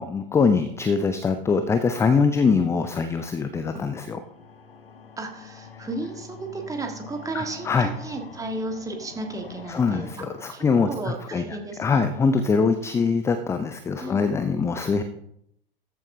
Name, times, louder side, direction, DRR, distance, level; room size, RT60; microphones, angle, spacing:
voice 1, 0.0-4.2 7.3-7.9 9.7-11.4 11.8-15.0, left 5 dB, 10° left, 9 dB, 0.5 m, -23 dB
sound 1, 4.2-11.2, left 5 dB, 75° left, 1.0 m, -45 dB
voice 2, 5.2-12.0 14.0-14.3, right 2 dB, 10° right, 4 dB, 1.5 m, -34 dB
13.5 x 8.2 x 2.7 m, 0.74 s
figure-of-eight pair, 90°, 29 cm